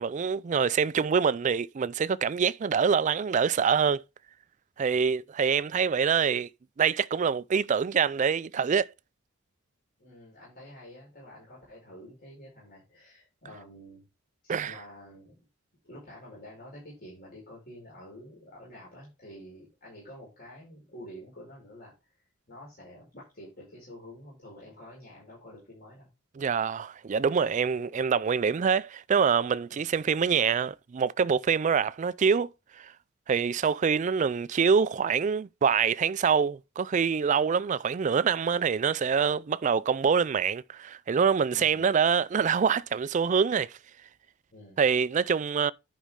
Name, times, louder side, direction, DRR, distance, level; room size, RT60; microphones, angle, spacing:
voice 1, 0.0-4.0 4.8-6.5 6.8-8.9 14.5-14.7 26.4-32.5 32.8-32.9 33.3-43.8 44.8-45.7, right 6 dB, 35° right, 0.3 m, -25 dB
voice 2, 10.0-14.0 14.4-15.4 15.8-21.9 22.5-26.1 29.7-29.8 41.5-41.9 44.5-44.8, equal, 45° left, 5.0 m, -48 dB
10.0 x 5.4 x 3.6 m
head